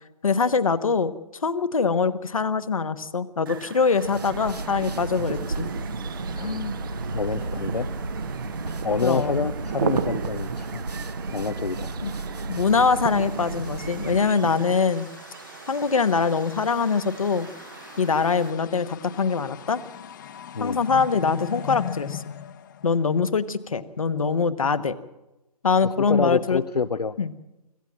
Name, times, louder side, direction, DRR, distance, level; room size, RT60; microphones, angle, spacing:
voice 1, 0.2-1.1 1.4-5.7 9.0-9.4 12.0-12.1 12.5-15.1 15.7-17.5 18.0-19.8 20.6-22.2 22.8-24.9 25.6-26.6 27.2-27.3, left 5 dB, 55° left, 13 dB, 1.3 m, -23 dB
sound 1, 3.5-18.5, right 8 dB, 30° right, 0.8 m, -37 dB
sound 2, 3.9-14.4, right 3 dB, 75° right, 1.3 m, -33 dB
voice 2, 6.3-6.8 7.1-7.9 8.8-10.9 11.3-11.9 20.5-20.8 26.0-27.2, left 5 dB, 75° left, 12 dB, 0.8 m, -27 dB
sound 3, 12.9-23.6, left 9 dB, 30° left, 1.0 m, -40 dB
25.5 x 15.0 x 7.5 m, 0.99 s
figure-of-eight pair, 140°, 21 cm